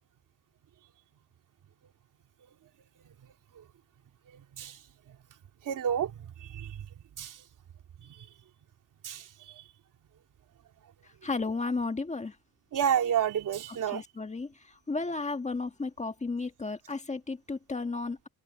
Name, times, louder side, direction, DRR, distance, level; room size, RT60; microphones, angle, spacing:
voice 1, 4.3-4.8 5.6-6.1 6.4-6.8 7.2-7.4 8.0-8.3 9.0-9.6 12.7-14.0, right 9 dB, 70° right, 3.0 m, -30 dB
voice 2, 11.0-12.4 13.9-18.3, left 3 dB, 20° left, 1.7 m, -34 dB
cardioid pair, 125°, 33 cm